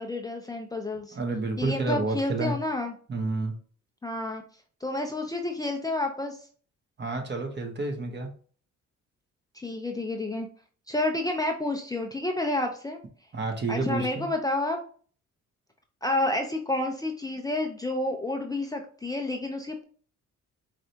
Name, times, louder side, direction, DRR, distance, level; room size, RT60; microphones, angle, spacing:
voice 1, 0.0-1.2 1.6-2.9 4.0-4.4 4.8-6.4 9.5-10.5 10.9-13.0 13.7-14.8 16.0-19.8, left 2 dB, 10° left, 3 dB, 0.6 m, -30 dB
voice 2, 1.1-2.5 3.1-3.5 7.0-8.3 13.3-14.3, right 3 dB, 35° right, 4 dB, 1.3 m, -29 dB
4.7 x 3.3 x 2.8 m, 0.43 s
cardioid pair, 90°, 30 cm